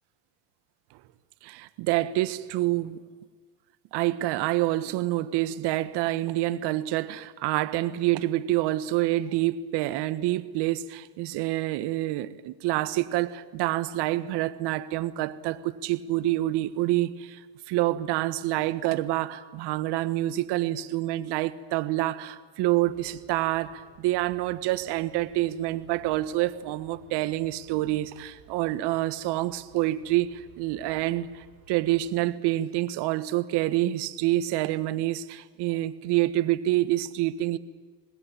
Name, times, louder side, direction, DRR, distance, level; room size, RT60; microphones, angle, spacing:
voice 1, 1.4-3.0 3.9-17.4 17.7-37.6, right 16 dB, 60° right, 13 dB, 1.6 m, -27 dB
sound 1, 22.8-32.1, right 3 dB, 75° right, 6.5 m, -56 dB
26.0 x 20.0 x 9.1 m, 1.4 s
hypercardioid pair, 85°, 46 cm